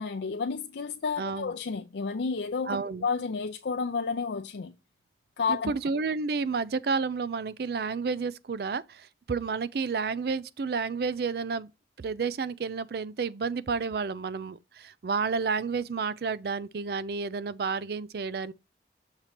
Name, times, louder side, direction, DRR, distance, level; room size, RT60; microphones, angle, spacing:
voice 1, 0.0-4.7 5.4-5.7, left 5 dB, 80° left, 0.5 m, -31 dB
voice 2, 1.2-1.5 2.7-3.1 5.5-11.7 12.0-18.5, right 4 dB, 60° right, 0.4 m, -31 dB
6.6 x 3.0 x 5.7 m
head